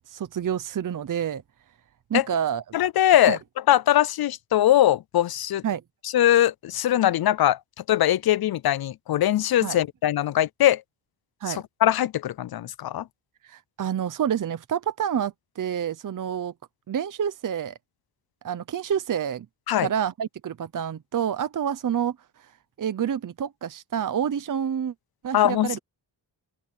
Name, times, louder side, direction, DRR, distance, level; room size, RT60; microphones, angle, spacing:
voice 1, 0.1-1.4 2.1-2.6 3.3-3.4 5.6-5.8 9.6-9.8 11.4-11.6 13.4-16.5 16.9-17.8 18.4-19.5 19.8-22.2 22.8-24.9 25.2-25.8, right 8 dB, 50° right, 0.8 m, -28 dB
voice 2, 2.7-3.4 3.7-5.6 6.0-7.6 7.9-10.8 11.5-13.0 19.7-19.9 25.3-25.8, left 12 dB, 60° left, 0.5 m, -21 dB
wide cardioid pair, 130°, 42 cm